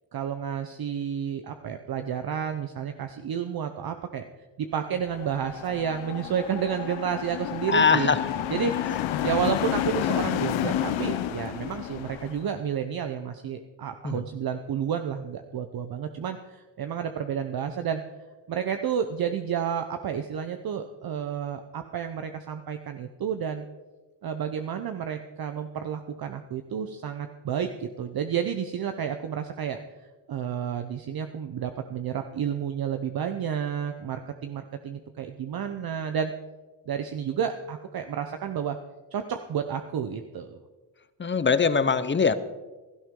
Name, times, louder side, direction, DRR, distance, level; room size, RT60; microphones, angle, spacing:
voice 1, 0.1-4.3 4.6-8.1 8.5-8.7 9.2-18.0 18.5-23.7 24.2-29.8 30.3-36.3 36.9-38.8 39.1-40.6, right 8 dB, 50° right, 7 dB, 0.8 m, -31 dB
sound 1, 5.0-12.4, left 11 dB, 90° left, 0.8 m, -30 dB
voice 2, 7.7-8.2 14.0-14.1 41.2-42.4, left 5 dB, 25° left, 14 dB, 0.8 m, -22 dB
16.5 x 12.5 x 3.8 m, 1.2 s
cardioid pair, 80°, 45 cm